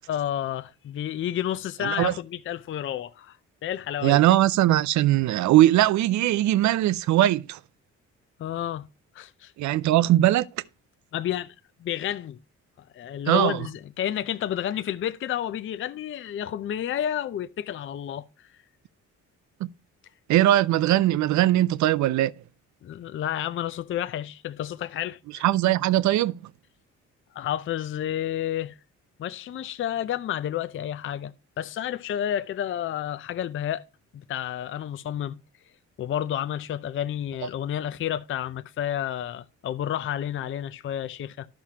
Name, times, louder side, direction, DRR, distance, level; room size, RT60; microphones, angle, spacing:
voice 1, 0.1-3.4 3.6-4.2 8.4-8.8 9.1-9.5 11.1-11.5 11.8-12.4 12.9-18.2 22.8-25.4 27.3-28.7 29.2-33.8 34.1-35.4 36.0-41.5, left 10 dB, 45° left, 0.4 m, -30 dB
voice 2, 1.8-2.1 4.0-7.6 9.6-10.5 13.3-13.6 19.6-19.7 20.3-22.3 25.4-26.4, right 14 dB, 70° right, 0.5 m, -20 dB
11.5 x 5.9 x 2.8 m
cardioid pair, 90°, 30 cm